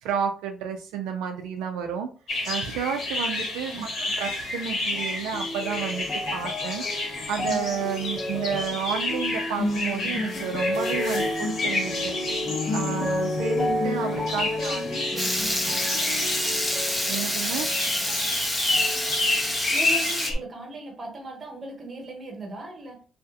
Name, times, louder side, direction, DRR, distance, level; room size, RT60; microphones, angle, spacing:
voice 1, 0.0-2.1 2.5-3.7 4.2-6.1 6.3-6.8 7.3-12.1 12.7-14.8 17.1-17.7, right 7 dB, 90° right, 0.3 m, -31 dB
sound 1, 2.3-20.4, left 2 dB, 65° left, 1.2 m, -30 dB
sound 2, 4.9-18.4 18.7-19.7 20.3-20.4, left 1 dB, 40° left, 0.9 m, -31 dB
voice 2, 14.6-15.3 15.7-15.8 19.7-23.1, right 2 dB, 35° right, 1.0 m, -38 dB
Water tap faucet / Liquid, 15.2-20.3, left 1 dB, 5° left, 0.6 m, -27 dB
2.6 x 2.4 x 2.3 m
cardioid pair, 80°, 0 cm